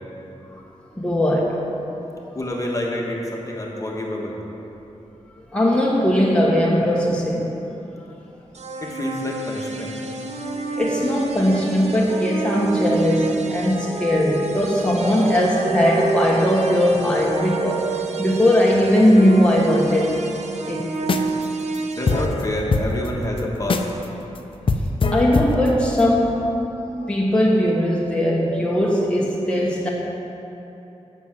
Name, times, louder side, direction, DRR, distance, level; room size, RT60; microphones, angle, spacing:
voice 1, 0.9-1.7 5.5-7.5 10.8-17.9 18.2-20.3 20.6-20.8 25.1-26.5 27.1-29.9, equal, 10° left, -4 dB, 1.3 m, -19 dB
voice 2, 2.3-4.4 8.8-10.0 22.0-23.9, left 1 dB, 25° left, -2 dB, 1.4 m, -27 dB
sound 1, 8.5-22.3, right 4 dB, 65° right, 0.8 m, -29 dB
sound 2, 21.0-21.4 21.7-21.8 22.1-24.0 24.4-24.5 24.7-26.1, left 3 dB, 45° left, 0.6 m, -23 dB
8.1 x 6.1 x 7.8 m, 3.0 s
wide cardioid pair, 80°, 12 cm